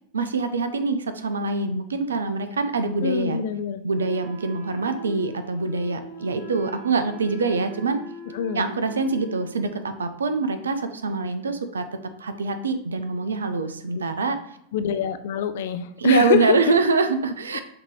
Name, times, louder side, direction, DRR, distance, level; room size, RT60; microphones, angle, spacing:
voice 1, 0.1-3.4 3.8-8.0 8.5-14.4 16.0-17.6, right 4 dB, 75° right, 9 dB, 0.5 m, -24 dB
voice 2, 3.0-3.8 8.3-8.7 14.7-16.7, left 8 dB, 60° left, 13 dB, 0.4 m, -25 dB
Wind instrument woodwind instrument, 3.9-9.8, right 3 dB, 80° left, 1.5 m, -42 dB
5.8 x 2.9 x 3.1 m, 0.74 s
figure-of-eight pair, 85°, 0 cm